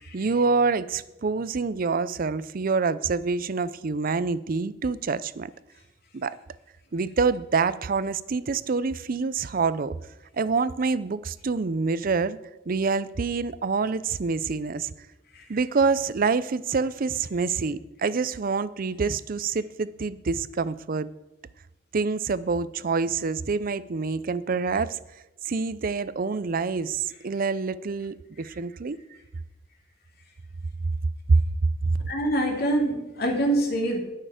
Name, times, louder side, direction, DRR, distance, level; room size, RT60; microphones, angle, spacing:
voice 1, 0.1-5.5 6.1-6.4 6.9-9.9 10.3-12.4 12.7-14.9 15.5-21.1 21.9-25.0 25.4-29.0 31.3-31.4 31.9-32.0, right 4 dB, 50° right, 16 dB, 0.5 m, -26 dB
voice 2, 32.1-34.0, right 1 dB, 55° left, 2 dB, 2.6 m, -25 dB
19.0 x 6.6 x 5.0 m, 0.96 s
head